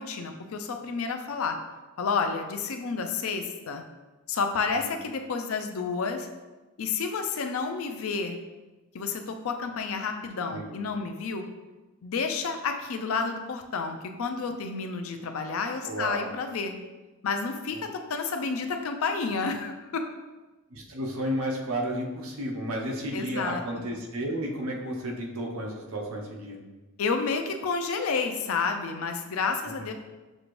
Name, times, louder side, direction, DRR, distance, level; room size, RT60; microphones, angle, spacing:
voice 1, 0.0-1.6 2.0-3.8 4.3-6.3 6.8-8.4 8.9-11.4 12.0-16.7 17.2-20.1 23.1-23.6 27.0-29.9, left 4 dB, 75° left, 5 dB, 0.5 m, -30 dB
voice 2, 15.8-16.3 17.7-17.8 20.7-26.6 29.6-29.9, equal, 85° right, 0 dB, 0.8 m, -32 dB
6.3 x 2.5 x 3.1 m, 1.2 s
head